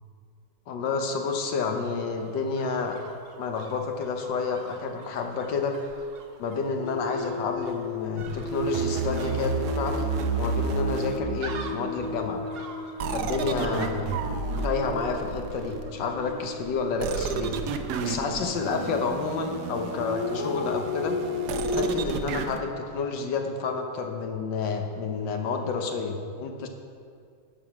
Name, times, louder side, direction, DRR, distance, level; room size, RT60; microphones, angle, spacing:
voice 1, 0.7-3.0 3.4-5.8 6.4-10.1 10.4-12.4 13.1-14.1 14.6-17.5 18.0-21.2 21.7-26.7, left 4 dB, 85° left, 4 dB, 1.7 m, -29 dB
sound 1, 1.3-19.4 19.7-19.8, right 4 dB, 55° right, 0.6 m, -48 dB
sound 2, 6.8-18.7 19.8-21.9, left 3 dB, 45° left, 0.5 m, -35 dB
sound 3, 8.2-11.9 13.0-16.1 17.0-22.6, right 5 dB, 70° right, 1.2 m, -31 dB
11.0 x 7.1 x 5.8 m, 2.3 s
omnidirectional pair, 1.9 m